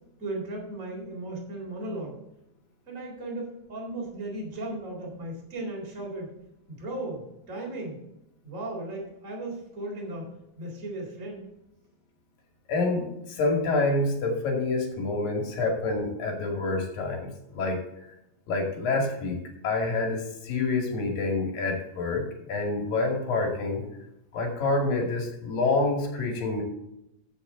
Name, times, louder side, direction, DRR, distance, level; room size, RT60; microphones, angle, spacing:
voice 1, 0.2-2.2 2.9-6.3 6.7-8.0 8.4-10.3 10.6-11.5, right 2 dB, 20° right, -2 dB, 3.9 m, -36 dB
voice 2, 12.7-17.8 18.5-19.4 19.6-23.8 24.3-26.6, left 3 dB, 65° left, 2 dB, 4.0 m, -27 dB
15.0 x 7.2 x 3.9 m, 0.84 s
omnidirectional pair, 4.3 m